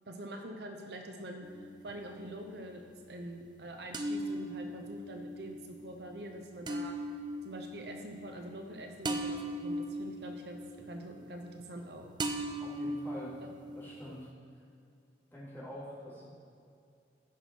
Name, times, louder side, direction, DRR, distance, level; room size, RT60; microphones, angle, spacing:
voice 1, 0.1-7.0 7.4-12.1 13.4-13.5, right 1 dB, 65° right, 3 dB, 0.9 m, -45 dB
sound 1, 1.4-2.3 3.9-11.9 12.2-14.3, right 1 dB, 25° right, 0.6 m, -39 dB
voice 2, 12.6-13.4 13.7-14.3 15.3-16.3, equal, 10° left, -8 dB, 2.8 m, -45 dB
15.0 x 6.1 x 4.6 m, 2.5 s
head